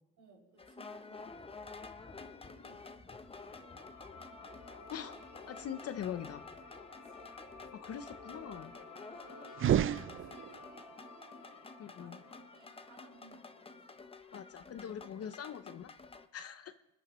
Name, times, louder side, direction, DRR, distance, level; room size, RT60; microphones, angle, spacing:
voice 1, 0.2-4.8 6.9-7.3 8.2-8.7 9.0-14.0, right 2 dB, 75° right, -4 dB, 6.2 m, -63 dB
sound 1, 0.6-16.3, left 4 dB, 20° left, 0.7 m, -51 dB
sound 2, 3.2-14.3, left 3 dB, 80° left, 3.7 m, -54 dB
voice 2, 5.5-6.4 7.7-8.7 11.8-12.2 14.3-15.9 16.3-16.7, left 9 dB, 55° left, 11 dB, 0.6 m, -42 dB
sound 3, 9.5-10.8, right 11 dB, 45° right, 0.4 m, -30 dB
29.0 x 10.0 x 3.0 m, 1.0 s
cardioid pair, 90°, 30 cm